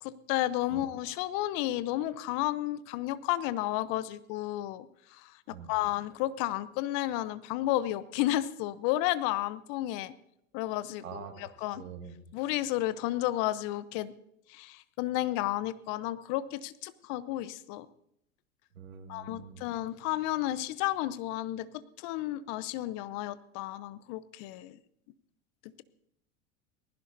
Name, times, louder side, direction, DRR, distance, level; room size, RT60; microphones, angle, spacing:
voice 1, 0.0-10.1 10.5-11.8 12.3-14.1 14.5-17.9 19.1-21.7 22.0-24.8, left 15 dB, 50° left, 16 dB, 0.9 m, -32 dB
voice 2, 5.5-5.8 11.0-12.2 18.7-19.6, right 6 dB, 75° right, 5 dB, 2.2 m, -45 dB
19.5 x 16.0 x 2.7 m, 0.74 s
hypercardioid pair, 85°, 40 cm